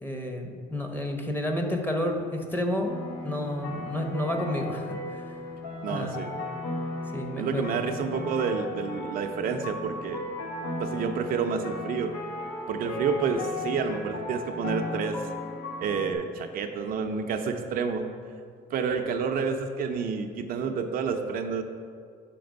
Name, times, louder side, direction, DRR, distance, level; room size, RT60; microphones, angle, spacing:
voice 1, 0.0-2.9 3.2-5.4 5.9-6.2 7.1-7.6, left 1 dB, 10° left, 3 dB, 0.8 m, -30 dB
sound 1, 2.8-16.1, left 2 dB, 85° left, 1.1 m, -36 dB
voice 2, 5.8-6.3 7.4-10.3 10.8-12.2 12.7-15.2 15.8-18.1 18.7-21.6, right 5 dB, 60° right, 5 dB, 0.5 m, -29 dB
5.9 x 4.2 x 5.2 m, 2.2 s
cardioid pair, 110°, 17 cm